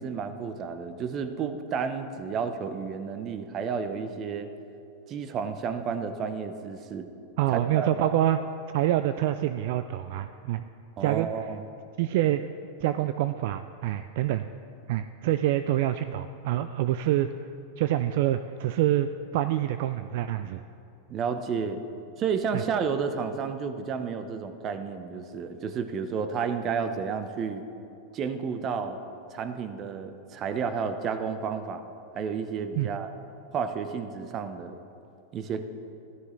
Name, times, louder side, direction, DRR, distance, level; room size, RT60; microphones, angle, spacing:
voice 1, 0.0-4.5 5.1-7.1 7.5-8.1 11.0-11.6 21.1-21.8 22.2-27.6 28.1-29.0 29.3-31.8 32.1-33.1 33.5-34.8 35.3-35.6, right 6 dB, 40° right, 9 dB, 0.9 m, -31 dB
voice 2, 7.4-8.4 8.7-10.6 11.0-11.3 12.0-12.5 12.8-14.5 14.9-17.5 17.8-20.6 32.7-32.9, right 13 dB, 65° right, 10 dB, 0.3 m, -26 dB
13.0 x 12.5 x 3.2 m, 2.6 s
hypercardioid pair, 105°, 0 cm